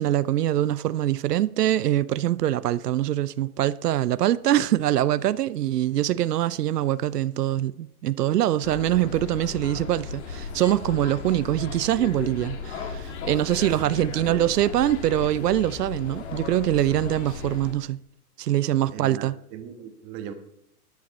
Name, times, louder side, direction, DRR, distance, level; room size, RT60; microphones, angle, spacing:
voice 1, 0.0-18.0 18.4-19.3, right 13 dB, 85° right, 0.6 m, -24 dB
sound 1, 8.6-17.7, left 5 dB, 45° left, 1.9 m, -36 dB
voice 2, 13.6-14.5 18.9-20.3, right 8 dB, 25° right, 1.3 m, -38 dB
14.0 x 10.5 x 4.2 m
hypercardioid pair, 160°, 46 cm